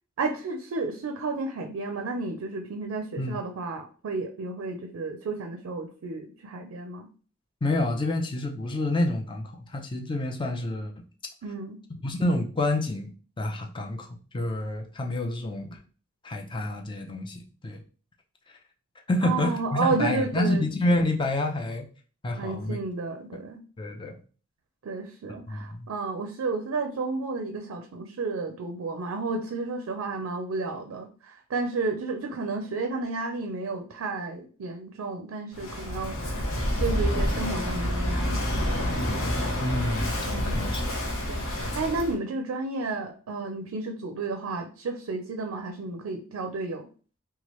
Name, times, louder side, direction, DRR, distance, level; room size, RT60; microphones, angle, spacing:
voice 1, 0.2-7.1 11.4-11.8 19.2-20.6 22.3-23.6 24.8-38.7 40.3-40.6 41.3-46.9, right 3 dB, 85° right, 4 dB, 0.4 m, -32 dB
voice 2, 7.6-10.9 12.0-14.1 14.3-15.8 16.2-17.8 18.5-18.6 19.1-21.9 22.2-22.8 23.8-24.1 25.5-25.9 39.6-40.2 40.5-40.8, left 1 dB, 25° left, 3 dB, 0.4 m, -28 dB
Walk footsteps / Wind / Waves surf, 35.5-42.2, equal, 85° left, 0.7 m, -28 dB
2.9 x 2.3 x 3.0 m, 0.39 s
head